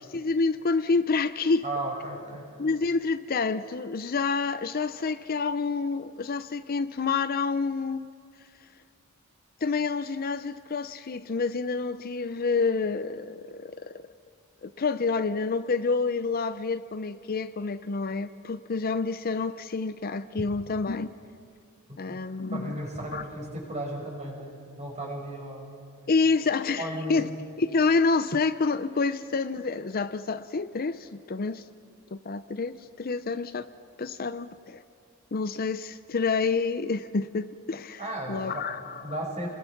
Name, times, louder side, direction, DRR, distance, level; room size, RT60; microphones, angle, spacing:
voice 1, 0.1-1.6 2.6-8.1 9.6-14.0 14.6-21.1 22.0-22.8 23.1-23.2 26.1-27.3 27.6-31.6 32.1-33.7 34.0-34.8 35.3-38.0 38.3-39.0, left 4 dB, 45° left, 12 dB, 0.6 m, -28 dB
voice 2, 1.6-2.5 21.9-22.2 22.5-25.8 26.8-27.2 38.0-38.7 39.0-39.5, right 1 dB, 30° right, 0 dB, 5.7 m, -35 dB
29.5 x 21.5 x 5.9 m, 2.3 s
head